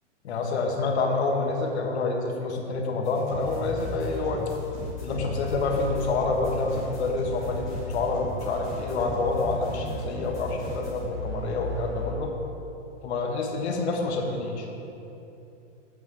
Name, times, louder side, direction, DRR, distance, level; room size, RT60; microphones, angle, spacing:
voice 1, 0.2-4.4 5.0-12.3 13.0-14.7, left 3 dB, 60° left, 1 dB, 1.3 m, -28 dB
sound 1, 3.0-12.1, left 2 dB, 5° left, 0.3 m, -35 dB
8.3 x 7.4 x 4.8 m, 2.9 s
supercardioid pair, 170°, 37 cm